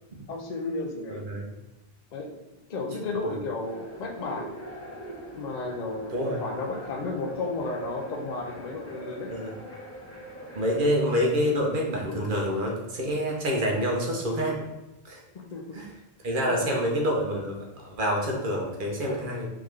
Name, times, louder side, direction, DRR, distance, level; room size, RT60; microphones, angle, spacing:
voice 1, 0.3-1.2 2.1-4.6 5.3-9.3 15.5-15.8 16.5-16.7, left 3 dB, 50° left, 2 dB, 0.7 m, -33 dB
voice 2, 1.1-1.5 6.1-6.4 9.3-9.5 10.5-14.6 15.0-15.2 15.7-15.9 16.2-19.5, equal, 60° right, -1 dB, 0.9 m, -27 dB
sound 1, 3.6-10.9, right 1 dB, 15° left, 1.1 m, -42 dB
3.6 x 3.5 x 3.3 m, 0.98 s
omnidirectional pair, 1.0 m